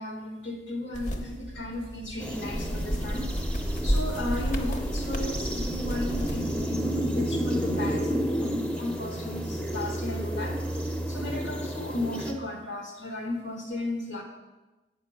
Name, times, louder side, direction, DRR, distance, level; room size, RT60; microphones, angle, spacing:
voice 1, 0.0-3.3 3.6-14.2, left 1 dB, 75° left, 3 dB, 1.4 m, -35 dB
sound 1, 0.9-6.6, equal, 40° left, 0.8 m, -31 dB
sound 2, 2.2-12.3, equal, 5° left, 0.6 m, -32 dB
7.8 x 5.8 x 6.2 m, 1.1 s
head